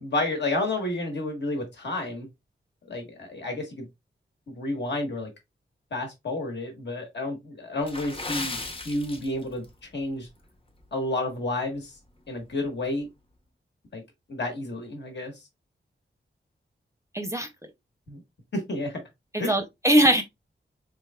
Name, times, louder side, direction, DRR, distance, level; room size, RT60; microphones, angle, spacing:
voice 1, 0.0-2.3 2.9-3.9 4.5-5.3 5.9-8.6 8.8-9.6 9.9-10.3 10.9-11.9 12.3-13.1 13.9-14.0 14.3-15.3 18.1-18.2 18.5-19.0 19.4-19.5, left 2 dB, 60° left, 1.4 m, -30 dB
Water / Splash splatter, 7.8-9.7 10.0-10.3 10.8-11.0 11.5-11.6, left 2 dB, 25° left, 0.7 m, -36 dB
voice 2, 17.1-17.5 19.3-20.2, right 1 dB, 15° right, 0.5 m, -21 dB
3.9 x 3.4 x 2.2 m
wide cardioid pair, 125°, 20 cm